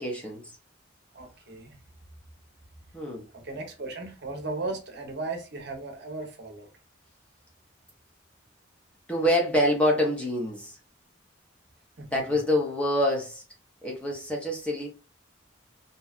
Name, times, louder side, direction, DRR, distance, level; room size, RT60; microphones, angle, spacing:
voice 1, 0.0-0.4 2.9-3.2 9.1-10.8 12.1-13.4 13.8-14.9, left 1 dB, 5° left, 0.6 m, -26 dB
voice 2, 1.1-1.8 3.3-6.7 12.0-12.4, right 3 dB, 55° right, 0.7 m, -36 dB
2.7 x 2.2 x 2.3 m
head